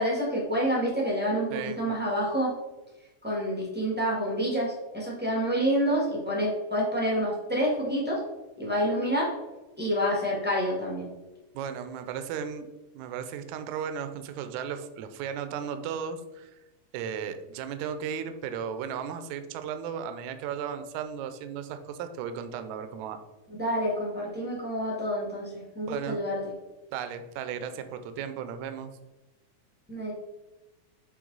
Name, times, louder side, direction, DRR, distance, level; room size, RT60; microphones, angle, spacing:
voice 1, 0.0-2.5 3.2-8.2 8.6-9.3 9.8-11.1 23.6-26.4 29.9-30.1, equal, 15° right, -4 dB, 0.3 m, -28 dB
voice 2, 11.5-12.7 13.0-16.5 16.9-23.2 25.9-26.2 26.9-28.9, right 7 dB, 80° right, 9 dB, 1.8 m, -35 dB
7.6 x 3.8 x 3.9 m, 1.1 s
omnidirectional pair, 3.6 m